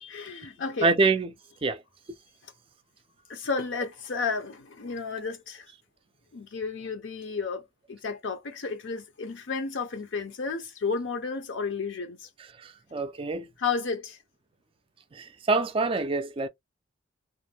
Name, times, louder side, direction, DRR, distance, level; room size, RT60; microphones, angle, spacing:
voice 1, 0.0-0.9 3.3-5.7 6.3-12.3 13.6-14.2, left 5 dB, 60° left, 0.5 m, -32 dB
voice 2, 0.8-1.3 1.6-1.8 12.6-13.5 15.1-16.5, right 3 dB, 25° right, 0.3 m, -26 dB
2.5 x 2.1 x 3.3 m
head